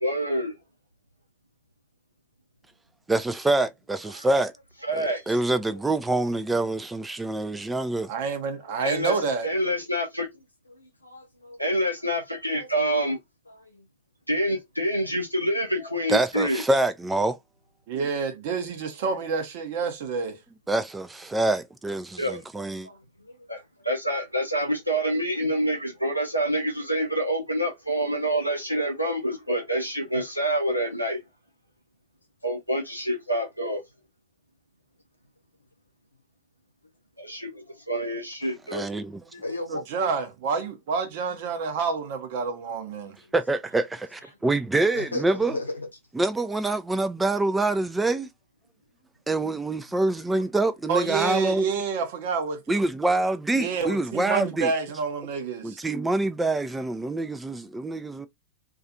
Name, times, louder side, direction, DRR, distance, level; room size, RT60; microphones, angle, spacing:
voice 1, 0.0-0.5 4.9-5.3 8.8-9.1 9.4-10.3 11.6-13.2 14.3-16.6 22.2-22.4 23.5-31.2 32.4-33.8 37.2-38.9 50.3-50.4, equal, 90° right, 0.6 m, -27 dB
voice 2, 3.1-4.5 4.9-8.1 16.1-17.4 20.7-22.9 38.7-39.2 43.3-45.6 46.1-48.3 49.3-51.6 52.7-54.7 55.6-58.3, right 2 dB, 10° right, 0.3 m, -25 dB
voice 3, 8.1-9.5 17.9-20.4 39.7-43.2 50.9-52.8 53.6-55.8, right 5 dB, 50° right, 0.7 m, -28 dB
voice 4, 8.7-9.0 9.6-9.7 10.4-11.6 12.5-13.1 13.5-13.9 18.7-18.8 22.8-23.5 39.3-39.8 40.6-40.7 43.2-43.3 44.9-45.9, left 2 dB, 80° left, 0.7 m, -38 dB
2.4 x 2.4 x 2.6 m
figure-of-eight pair, 90°, 0 cm